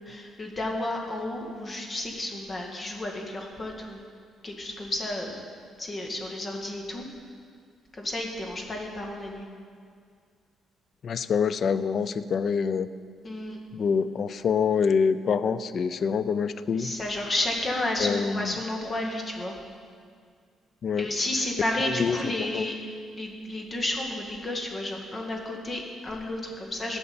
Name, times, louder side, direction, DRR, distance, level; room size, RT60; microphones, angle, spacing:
voice 1, 0.0-4.0 4.4-5.3 5.8-7.1 7.9-9.5 13.2-13.6 16.7-19.5 21.0-22.8 23.1-27.0, left 1 dB, 30° left, 1 dB, 1.9 m, -31 dB
voice 2, 11.0-12.9 13.7-17.0 18.0-18.5 20.8-21.1 22.0-22.6, left 6 dB, 50° left, 14 dB, 0.5 m, -26 dB
13.5 x 5.6 x 8.7 m, 2.1 s
cardioid pair, 105°, 0 cm